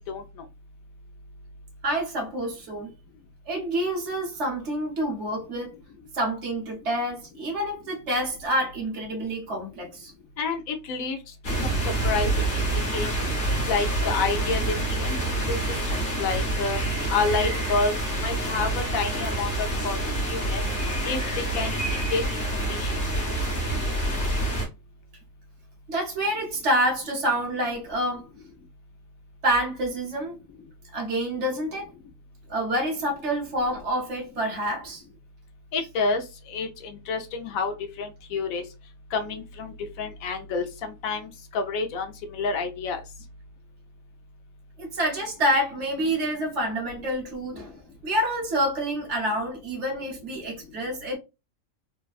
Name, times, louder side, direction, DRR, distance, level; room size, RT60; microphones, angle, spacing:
voice 1, 1.8-2.9 3.5-5.7 6.1-10.1 23.4-23.5 25.9-28.2 29.4-30.4 30.9-31.9 32.5-35.0 44.8-47.8 48.0-51.2, right 1 dB, 55° right, 1.3 m, -27 dB
voice 2, 10.4-11.2 11.6-11.8 12.0-12.6 12.9-13.3 13.7-14.6 14.9-15.6 15.9-16.8 17.1-17.9 18.2-20.0 20.3-20.6 21.0-21.2 21.5-21.7 22.1-22.2 22.7-22.9 35.7-38.6 39.1-43.0, left 4 dB, 75° left, 1.0 m, -29 dB
sound 1, 11.4-24.7, right 1 dB, 40° left, 0.9 m, -27 dB
3.3 x 2.1 x 2.3 m
omnidirectional pair, 1.5 m